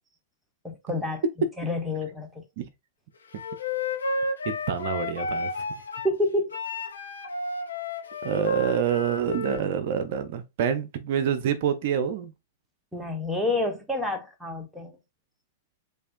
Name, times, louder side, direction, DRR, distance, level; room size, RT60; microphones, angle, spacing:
voice 1, 0.6-1.2 1.6-2.4 6.0-6.6 12.9-15.0, left 2 dB, 5° right, 1.0 m, -28 dB
Wind instrument woodwind instrument, 3.3-6.1 6.5-9.6, left 3 dB, 80° left, 1.1 m, -32 dB
voice 2, 4.5-5.7 8.2-12.3, right 8 dB, 55° right, 0.5 m, -27 dB
6.4 x 2.6 x 2.5 m
figure-of-eight pair, 100°, 0 cm